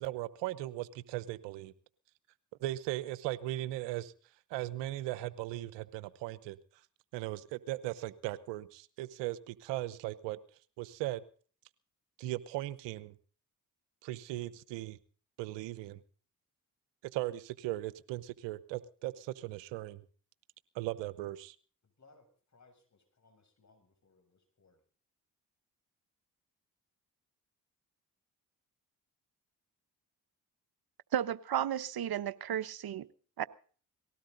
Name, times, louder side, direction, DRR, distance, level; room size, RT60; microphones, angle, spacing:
voice 1, 0.0-1.7 2.6-4.1 4.5-6.6 7.1-10.4 10.8-11.2 12.2-13.1 14.0-15.0 15.4-16.0 17.0-20.0 20.7-21.6, right 16 dB, 85° right, 17 dB, 1.0 m, -38 dB
voice 2, 21.8-24.8, left 3 dB, 40° left, 5 dB, 6.9 m, -65 dB
voice 3, 31.1-33.1 33.4-33.5, right 10 dB, 60° right, 15 dB, 1.1 m, -33 dB
19.5 x 17.0 x 4.0 m, 0.43 s
hypercardioid pair, 45°, 42 cm